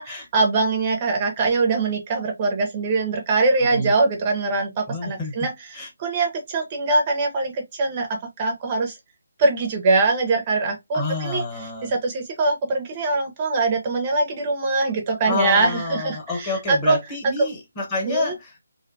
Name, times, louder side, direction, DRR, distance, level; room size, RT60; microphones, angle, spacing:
voice 1, 0.3-9.0 9.4-17.0 18.0-18.3, right 3 dB, 30° right, 0.5 m, -23 dB
voice 2, 4.9-5.3 5.7-5.9 10.9-11.9 15.3-18.6, left 3 dB, 20° left, 0.9 m, -28 dB
2.5 x 2.1 x 2.5 m
figure-of-eight pair, 155°, 0 cm